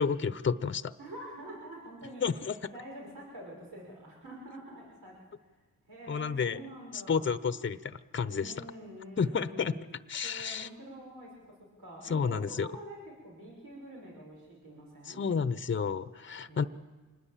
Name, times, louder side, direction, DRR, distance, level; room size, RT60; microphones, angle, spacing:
voice 1, 0.0-0.9 2.2-2.6 6.1-6.6 6.9-8.5 9.2-9.7 10.1-10.7 12.0-12.7 15.0-16.6, left 6 dB, 35° left, 14 dB, 0.8 m, -31 dB
voice 2, 1.0-5.5 5.9-7.6 8.3-9.9 10.2-15.2 16.5-16.7, right 1 dB, 90° right, -2 dB, 5.9 m, -47 dB
26.5 x 20.0 x 7.4 m, 1.3 s
cardioid pair, 65°, 33 cm